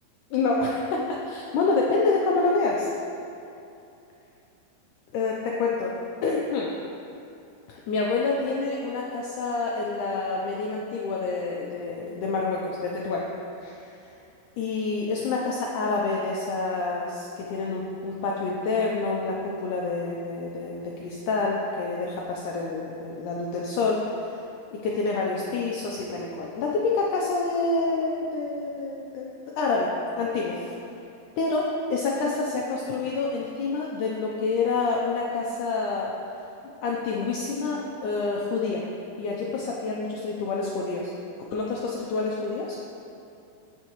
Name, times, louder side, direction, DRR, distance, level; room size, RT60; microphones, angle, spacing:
voice 1, 0.3-2.9 5.1-5.9 6.2-6.7 7.7-13.3 13.6-14.1 14.6-24.4 24.7-30.7 31.4-36.1 36.8-38.8 39.2-41.1 41.5-42.8, left 3 dB, 80° left, -2 dB, 1.8 m, -27 dB
16.0 x 5.6 x 3.0 m, 2.7 s
omnidirectional pair, 4.2 m